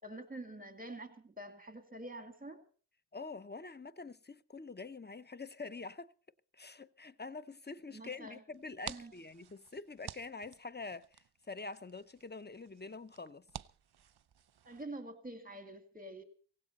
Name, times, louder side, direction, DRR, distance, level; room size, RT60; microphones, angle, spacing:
voice 1, 0.0-2.6 7.9-8.4 8.9-9.1 14.6-16.2, right 1 dB, 20° right, 2.3 m, -47 dB
voice 2, 3.1-6.1 6.5-13.5, left 3 dB, 25° left, 0.8 m, -46 dB
sound 1, 8.5-14.8, right 9 dB, 65° right, 0.6 m, -52 dB
17.5 x 16.0 x 4.2 m
wide cardioid pair, 50°, 43 cm